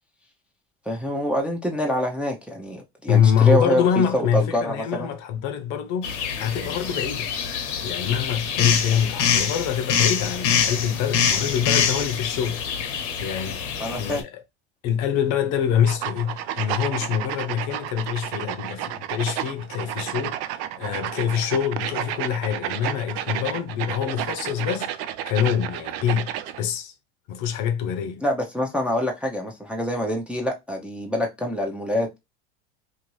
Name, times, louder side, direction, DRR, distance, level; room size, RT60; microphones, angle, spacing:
voice 1, 0.9-5.1 13.8-14.2 28.2-32.2, equal, 5° right, 0.5 m, -26 dB
voice 2, 3.1-7.3 7.8-12.6 12.9-14.4 14.8-26.3 26.6-26.9 27.3-28.2, left 8 dB, 50° left, 0.7 m, -25 dB
sound 1, 6.0-14.2, left 7 dB, 85° left, 0.8 m, -25 dB
sound 2, 15.9-26.6, right 12 dB, 60° right, 0.5 m, -31 dB
2.6 x 2.5 x 3.0 m
hypercardioid pair, 95°, 35 cm